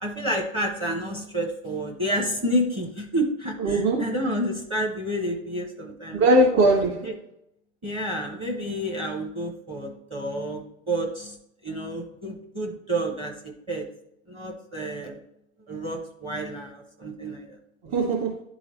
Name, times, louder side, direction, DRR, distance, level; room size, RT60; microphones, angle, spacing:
voice 1, 0.0-6.2 7.0-7.1 7.8-11.4 11.6-13.3 13.7-13.9 14.3-15.2 15.7-17.6, right 1 dB, 15° right, 1 dB, 0.7 m, -29 dB
voice 2, 3.6-4.0 6.1-7.1 17.8-18.4, right 1 dB, 40° right, -6 dB, 2.0 m, -20 dB
11.0 x 3.9 x 3.0 m, 0.79 s
hypercardioid pair, 140°, 41 cm